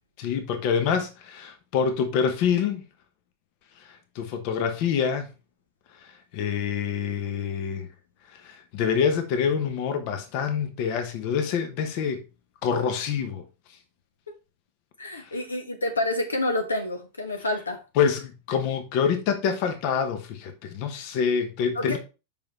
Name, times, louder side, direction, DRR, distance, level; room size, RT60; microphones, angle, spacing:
voice 1, 0.2-2.8 3.9-5.3 6.3-7.9 8.4-12.2 12.6-13.4 18.0-22.0, left 7 dB, 45° left, 1.0 m, -26 dB
voice 2, 15.0-17.8 21.7-22.0, left 1 dB, 75° left, 1.1 m, -28 dB
6.9 x 5.3 x 3.1 m
figure-of-eight pair, 90°, 0 cm